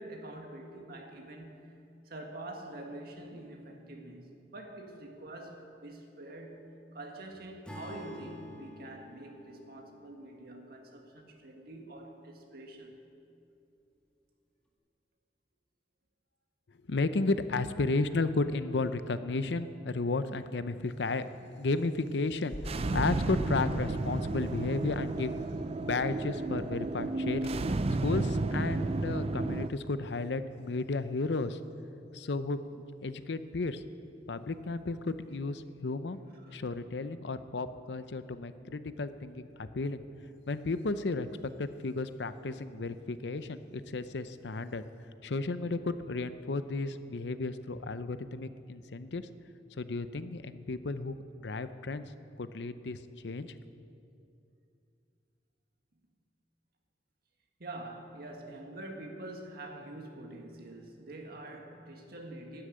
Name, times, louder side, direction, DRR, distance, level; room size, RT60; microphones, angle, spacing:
voice 1, 0.0-13.1 36.3-36.6 57.6-62.7, right 1 dB, 60° right, 2 dB, 1.9 m, -46 dB
Acoustic guitar / Strum, 7.7-11.9, left 1 dB, 5° left, 1.8 m, -49 dB
voice 2, 16.9-21.2 21.6-25.4 25.7-27.5 28.0-31.6 32.1-33.8 34.3-36.2 36.5-40.0 40.5-44.8 45.2-49.3 49.8-52.0 52.4-53.0 53.2-53.6, left 3 dB, 70° left, 12 dB, 0.6 m, -33 dB
sound 1, 22.5-28.5 28.8-28.9, left 1 dB, 35° left, 1.4 m, -47 dB
sound 2, 22.7-29.7, right 2 dB, 35° right, 0.4 m, -32 dB
12.5 x 10.5 x 8.8 m, 2.6 s
head